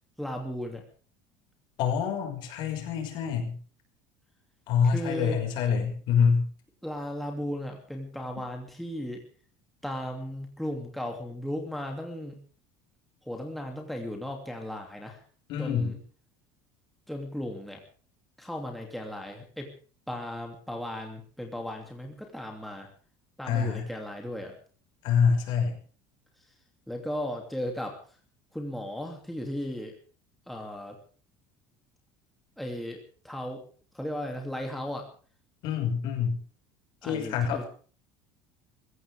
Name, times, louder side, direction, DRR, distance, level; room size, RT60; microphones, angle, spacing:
voice 1, 0.2-0.8 4.8-5.4 6.8-9.2 9.8-12.4 13.2-15.2 15.6-16.0 17.1-17.8 18.4-19.7 20.1-22.9 23.4-24.5 26.9-28.0 28.5-29.9 30.5-31.0 32.6-33.6 33.9-35.1 37.0-37.6, equal, ahead, 1 dB, 2.9 m, -36 dB
voice 2, 1.8-3.6 4.7-6.5 15.5-16.0 23.4-23.9 25.0-25.8 35.6-36.4 37.0-37.7, left 6 dB, 55° left, 4 dB, 5.8 m, -26 dB
23.5 x 16.0 x 3.6 m, 0.42 s
cardioid pair, 160°, 9 cm